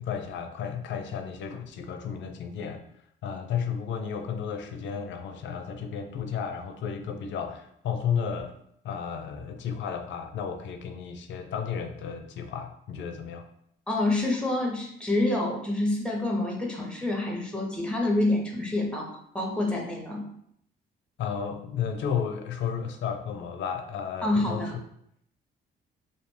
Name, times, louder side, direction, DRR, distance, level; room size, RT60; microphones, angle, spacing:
voice 1, 0.0-2.8 3.2-8.5 8.8-13.5 21.2-24.7, left 7 dB, 70° left, 6 dB, 0.4 m, -33 dB
voice 2, 13.9-20.3 24.2-24.7, left 2 dB, 5° left, 1 dB, 0.6 m, -27 dB
2.7 x 2.1 x 3.0 m, 0.71 s
cardioid pair, 90°, 20 cm